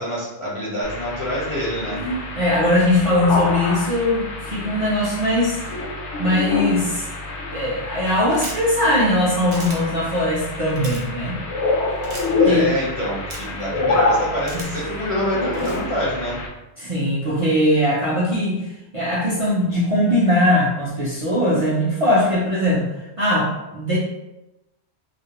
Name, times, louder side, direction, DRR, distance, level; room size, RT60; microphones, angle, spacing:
voice 1, 0.0-2.0 12.4-16.4, equal, 40° left, -7 dB, 0.5 m, -26 dB
sound 1, 0.8-16.5, left 3 dB, 75° left, 0.8 m, -26 dB
voice 2, 2.4-5.6 6.2-7.0 7.5-11.4 12.4-12.7 14.5-14.7 16.8-18.6 18.9-22.9 23.2-24.0, left 1 dB, 50° right, -7 dB, 0.4 m, -20 dB
sound 2, 8.3-8.7 9.5-9.8 10.7-11.0 12.0-12.3 13.3-13.6 14.5-14.9 15.5-15.8, right 2 dB, 65° right, 0.8 m, -35 dB
2.4 x 2.0 x 2.8 m, 0.97 s
omnidirectional pair, 1.1 m